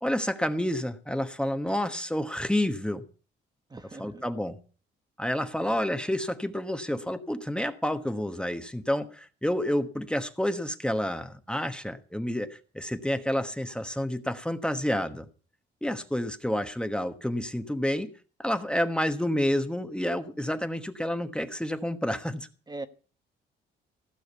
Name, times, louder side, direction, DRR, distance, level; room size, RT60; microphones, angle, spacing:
voice 1, 0.0-3.0 4.0-4.6 5.2-15.3 15.8-18.1 18.4-22.5, left 1 dB, 5° left, 1.2 m, -29 dB
voice 2, 3.7-4.2 22.7-22.9, right 2 dB, 20° right, 1.1 m, -40 dB
15.5 x 6.4 x 8.2 m
cardioid pair, 90°, 20 cm